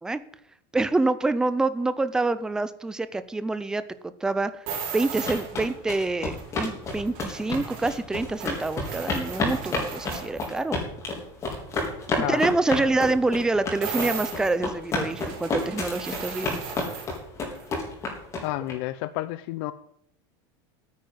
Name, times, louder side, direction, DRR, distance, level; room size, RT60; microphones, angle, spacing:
voice 1, 0.7-4.5 4.9-10.8 12.3-16.6, right 2 dB, 5° right, 13 dB, 0.6 m, -26 dB
sound 1, 4.7-5.7 6.4-10.6 13.8-17.2 17.5-17.7, right 6 dB, 45° right, 4.3 m, -37 dB
sound 2, 4.9-18.7, left 3 dB, 25° left, 3.9 m, -30 dB
voice 2, 18.4-19.7, left 16 dB, 55° left, 12 dB, 0.7 m, -30 dB
9.7 x 9.1 x 9.6 m, 0.70 s
supercardioid pair, 170°, 12 cm